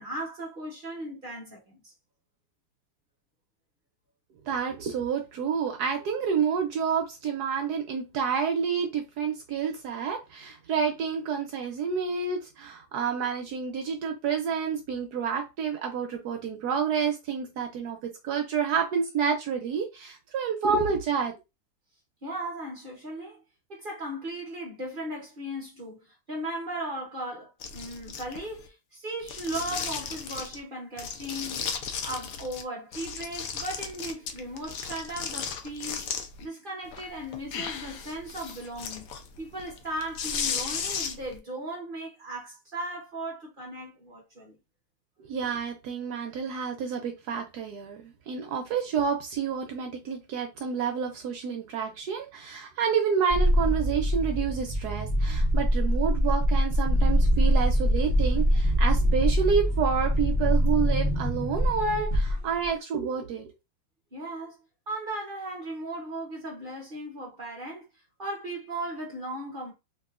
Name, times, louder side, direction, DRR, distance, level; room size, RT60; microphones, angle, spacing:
voice 1, 0.0-1.9 22.2-23.4 23.7-31.7 32.0-36.1 36.4-39.1 39.4-44.6 64.1-64.6 64.9-67.9 68.2-69.7, right 1 dB, 50° right, 0.6 m, -37 dB
voice 2, 4.4-21.3 45.2-63.5, right 6 dB, 70° right, 1.0 m, -29 dB
sound 1, 27.6-28.6 29.2-30.6 31.0-32.6 32.9-36.5 36.9-41.4, left 6 dB, 90° left, 0.7 m, -35 dB
sound 2, 53.3-62.7, equal, 30° left, 1.0 m, -24 dB
3.0 x 2.9 x 2.3 m
omnidirectional pair, 2.1 m